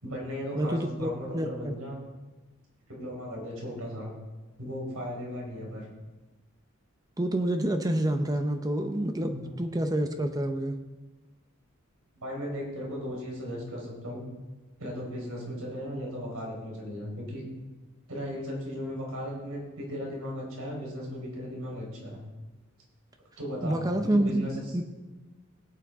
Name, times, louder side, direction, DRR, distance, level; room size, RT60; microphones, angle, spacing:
voice 1, 0.0-2.0 2.9-4.1 4.6-5.9 9.2-9.5 12.2-14.4 14.8-17.5 18.1-22.2 23.4-24.6, equal, 80° right, -2 dB, 4.3 m, -36 dB
voice 2, 0.5-1.8 7.2-10.8 23.6-24.8, right 1 dB, 15° right, 6 dB, 0.6 m, -28 dB
17.5 x 8.7 x 3.6 m, 1.2 s
head